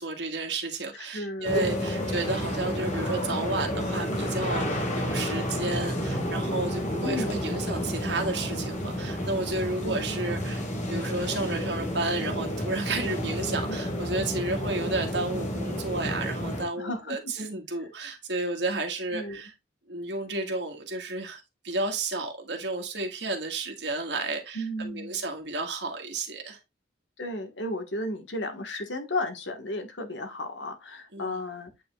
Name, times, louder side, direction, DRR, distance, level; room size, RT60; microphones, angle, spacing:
voice 1, 0.0-19.5 19.9-26.6 31.1-31.3, right 2 dB, 70° right, 1.8 m, -32 dB
voice 2, 0.9-1.6 7.0-7.4 9.8-10.0 16.8-17.3 19.1-19.4 24.5-25.2 27.2-31.7, left 1 dB, 90° left, 1.5 m, -34 dB
sound 1, 1.4-16.6, equal, 40° left, 2.0 m, -30 dB
8.6 x 5.0 x 2.4 m
head